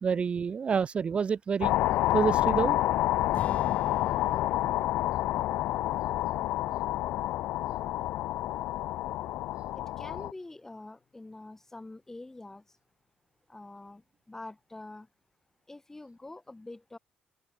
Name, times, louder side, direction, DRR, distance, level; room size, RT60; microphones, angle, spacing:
voice 1, 0.0-1.7 2.1-2.8, right 6 dB, 35° right, 0.6 m, -28 dB
sound 1, 1.6-10.3, left 15 dB, 85° left, 0.3 m, -28 dB
Strum, 3.3-9.6, left 6 dB, 40° left, 2.0 m, -46 dB
voice 2, 9.7-12.8 13.5-15.1 15.7-17.0, left 2 dB, 15° left, 3.2 m, -46 dB
open air
cardioid pair, 115°, 3 cm